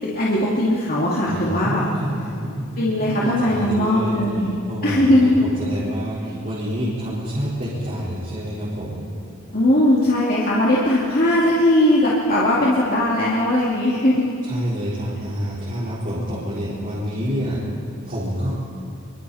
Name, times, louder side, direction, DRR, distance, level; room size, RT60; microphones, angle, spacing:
voice 1, 0.0-1.8 2.8-4.5 4.8-5.4 9.5-14.3, left 1 dB, 45° left, -6 dB, 2.5 m, -19 dB
voice 2, 1.3-9.0 14.4-18.5, equal, 40° right, -9 dB, 4.5 m, -28 dB
27.5 x 23.5 x 4.3 m, 2.4 s
head